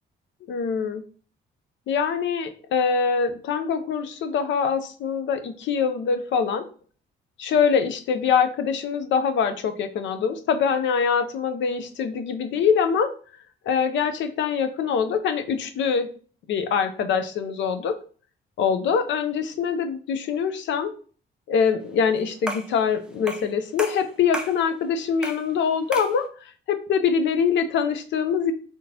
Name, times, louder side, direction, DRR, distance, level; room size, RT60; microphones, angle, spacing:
voice 1, 0.5-1.0 1.9-6.7 7.4-13.1 13.7-16.1 16.5-18.0 18.6-20.9 21.5-28.5, left 6 dB, 70° left, 9 dB, 0.5 m, -24 dB
sound 1, 22.5-22.8 23.3-23.5 23.8-24.6 25.2-25.5 25.9-26.2, right 1 dB, 5° right, 0.5 m, -32 dB
3.6 x 2.6 x 2.7 m, 0.42 s
cardioid pair, 90°, 20 cm